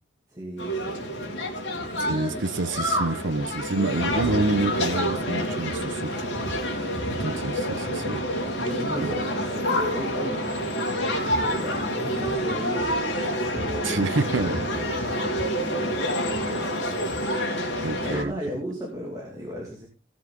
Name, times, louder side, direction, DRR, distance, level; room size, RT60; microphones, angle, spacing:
voice 1, 0.3-1.4 1.9-2.4 8.6-13.0 13.5-16.8 17.9-19.9, equal, 20° right, 2.6 m, -36 dB
sound 1, 0.6-18.2, equal, 65° left, 3.5 m, -28 dB
voice 2, 2.1-6.3 7.1-8.2 9.0-9.2 13.8-14.7 17.8-18.3, right 2 dB, 80° right, 1.0 m, -28 dB
17.0 x 7.4 x 3.9 m
head